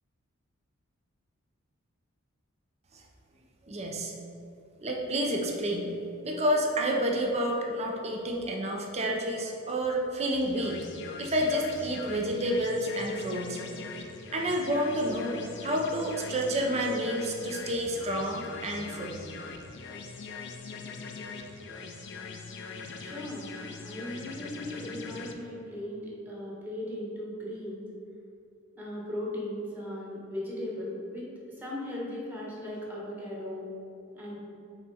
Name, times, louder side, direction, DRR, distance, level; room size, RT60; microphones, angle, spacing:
voice 1, 3.6-4.1 4.8-5.9 6.2-10.8 11.2-13.6 14.3-19.2, equal, 30° right, 0 dB, 0.6 m, -29 dB
sound 1, 10.3-25.3, left 4 dB, 55° left, 0.5 m, -42 dB
voice 2, 22.9-23.4 23.8-27.8 28.7-31.3 31.6-33.7 34.1-34.4, left 1 dB, 10° right, -5 dB, 1.3 m, -37 dB
5.9 x 4.1 x 4.2 m, 2.7 s
head